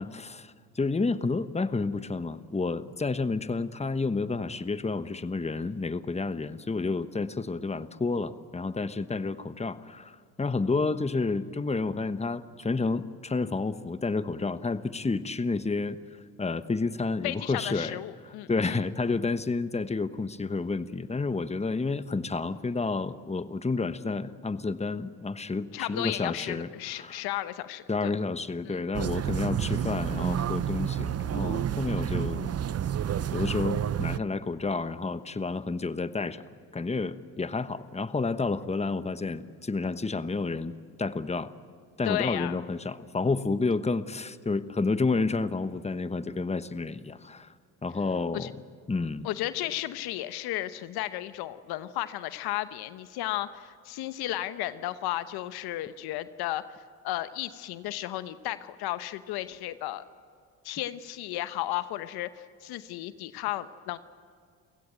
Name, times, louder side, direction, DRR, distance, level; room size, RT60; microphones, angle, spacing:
voice 1, 0.0-16.0 16.4-18.0 18.2-27.2 27.9-32.5 33.3-36.4 36.7-41.5 42.0-47.5 47.8-48.5 48.9-49.3, left 3 dB, 15° left, 13 dB, 1.1 m, -30 dB
voice 2, 17.2-18.8 25.7-28.1 28.7-28.8 42.0-42.6 48.3-48.5 49.2-56.6 57.0-60.0 60.6-64.0, left 15 dB, 80° left, 13 dB, 1.0 m, -34 dB
sound 1, 28.9-34.2, right 10 dB, 40° right, 0.8 m, -29 dB
29.5 x 16.5 x 9.1 m, 2.2 s
supercardioid pair, 60°, 38 cm